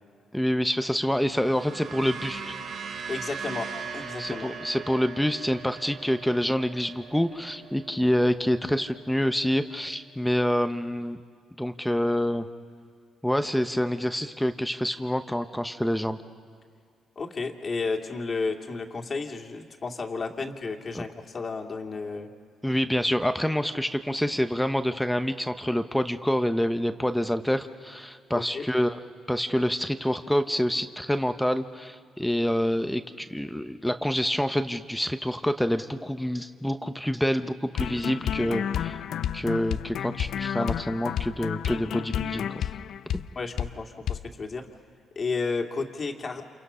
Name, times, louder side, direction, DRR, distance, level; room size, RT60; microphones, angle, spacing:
voice 1, 0.3-2.6 4.2-11.2 11.6-12.5 13.2-16.2 20.9-21.1 22.6-29.0 29.3-39.0 39.3-42.7 43.1-43.2, equal, 5° left, 9 dB, 0.9 m, -27 dB
sound 1, 1.0-9.4, right 5 dB, 60° right, 3.0 m, -40 dB
voice 2, 3.1-4.5 17.2-22.3 28.3-28.7 43.4-44.7 45.2-46.4, left 4 dB, 40° left, 3 dB, 2.3 m, -32 dB
sound 2, 37.7-43.3 43.6-43.7 44.1-44.2, left 9 dB, 70° left, 0.6 m, -30 dB
29.5 x 28.0 x 5.6 m, 2.2 s
cardioid pair, 90°, 0 cm